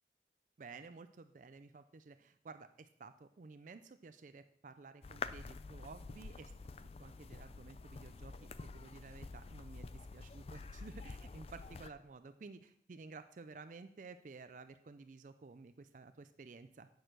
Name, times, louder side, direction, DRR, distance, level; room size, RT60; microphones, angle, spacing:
voice 1, 0.6-6.5 7.0-16.9, right 4 dB, 45° right, 10 dB, 0.4 m, -53 dB
sound 1, 5.0-11.9, left 4 dB, 35° left, 0.4 m, -48 dB
9.2 x 6.4 x 6.0 m, 0.69 s
head